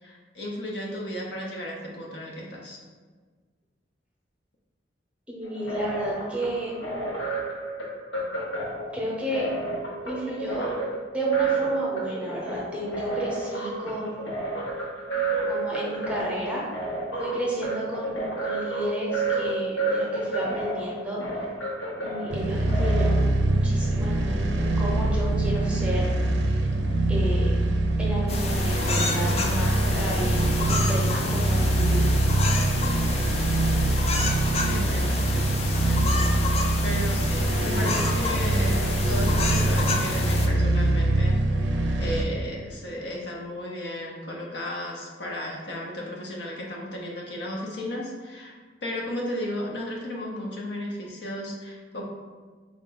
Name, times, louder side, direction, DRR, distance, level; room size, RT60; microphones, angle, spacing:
voice 1, 0.0-2.8 34.6-36.1 36.8-41.4 41.6-48.5 48.8-52.0, left 1 dB, 65° left, -2 dB, 0.7 m, -34 dB
voice 2, 5.3-6.8 8.9-9.5 10.0-10.7 11.1-14.2 15.5-16.6 17.2-21.2 22.0-26.0 27.1-27.6 28.0-32.1, equal, 5° right, -5 dB, 0.8 m, -32 dB
sound 1, 5.4-23.2, right 3 dB, 90° left, 0.9 m, -30 dB
sound 2, 22.3-42.2, right 1 dB, 70° right, 0.4 m, -24 dB
sound 3, 28.3-40.5, left 3 dB, 35° left, 0.3 m, -30 dB
3.7 x 2.5 x 3.7 m, 1.5 s
head